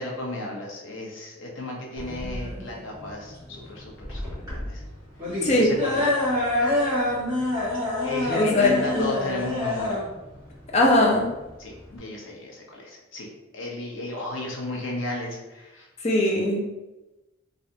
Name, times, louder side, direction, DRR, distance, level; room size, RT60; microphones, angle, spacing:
voice 1, 0.0-4.8 5.5-6.1 8.0-10.0 11.6-13.3 13.5-15.9, left 2 dB, 80° left, -1 dB, 0.8 m, -34 dB
sound 1, 2.0-12.0, left 1 dB, 15° right, 1.4 m, -27 dB
voice 2, 5.4-5.7 8.3-9.1 10.7-11.3 16.0-16.7, left 1 dB, 35° left, -1 dB, 0.6 m, -20 dB
3.2 x 2.6 x 2.7 m, 1.0 s
head